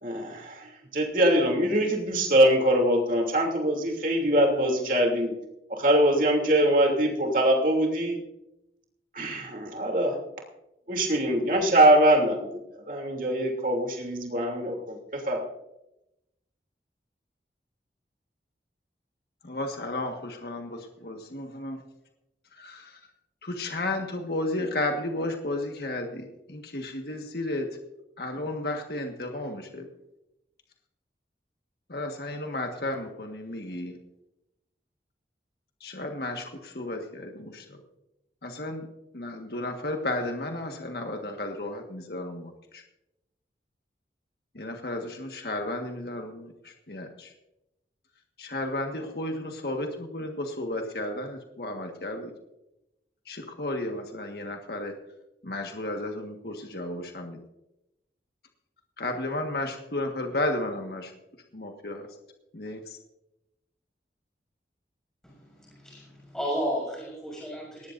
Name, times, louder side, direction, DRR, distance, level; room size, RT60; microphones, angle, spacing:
voice 1, 0.0-5.4 5.7-8.2 9.1-10.2 10.9-12.5 12.9-15.4, right 1 dB, 50° right, 1 dB, 3.0 m, -23 dB
voice 2, 19.4-21.8 22.5-23.0 23.4-27.7 28.2-29.9 31.9-34.0 35.8-37.8 38.4-38.9 39.1-42.8 44.5-47.3 48.4-52.3 53.2-54.9 55.4-57.4 59.0-61.1 61.5-62.1 62.5-63.0, left 2 dB, 65° left, 3 dB, 1.6 m, -33 dB
voice 3, 65.8-67.9, equal, 5° left, -4 dB, 6.7 m, -32 dB
18.5 x 18.5 x 2.6 m, 0.90 s
head